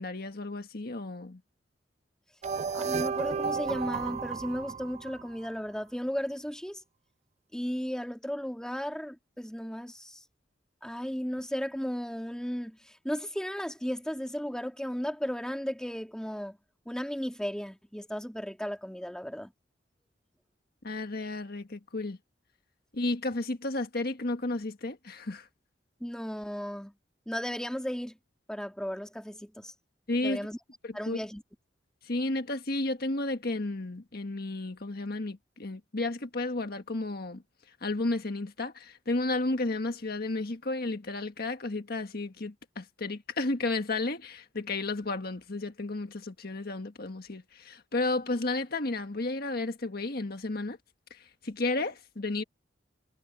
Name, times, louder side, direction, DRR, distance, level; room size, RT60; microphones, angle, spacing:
voice 1, 0.0-1.4 20.8-22.2 22.9-25.5 30.1-30.5 30.8-31.2 32.0-37.4 37.8-50.8 51.1-52.4, left 2 dB, 55° left, 1.6 m, -32 dB
sound 1, 2.4-5.5, right 5 dB, 35° right, 0.4 m, -33 dB
voice 2, 2.7-6.8 7.5-10.2 10.8-16.6 16.9-19.5 26.0-26.9 27.3-28.2 28.5-29.7 30.2-30.6 30.9-31.4, equal, 5° left, 2.3 m, -35 dB
head